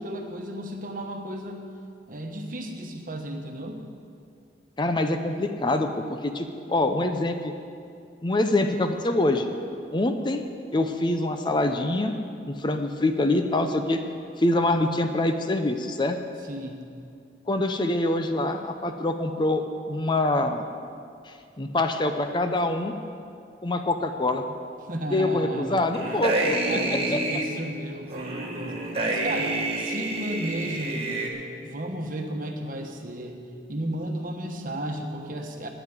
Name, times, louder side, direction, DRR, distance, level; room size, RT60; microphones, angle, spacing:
voice 1, 0.0-1.6 2.1-3.8 16.4-16.9 24.9-25.9 26.2-26.3 26.7-33.4 33.7-35.7, right 1 dB, 50° right, 3 dB, 1.3 m, -34 dB
voice 2, 4.8-7.5 8.2-9.5 9.9-10.4 10.7-12.1 12.5-14.0 14.4-16.2 17.5-20.7 21.3-22.9 23.6-24.5 25.1-27.2 29.0-29.1, left 2 dB, 25° left, 6 dB, 0.6 m, -25 dB
sound 1, 25.9-27.4 28.1-31.3, right 2 dB, 35° right, 1.6 m, -28 dB
9.3 x 9.3 x 9.3 m, 2.4 s
head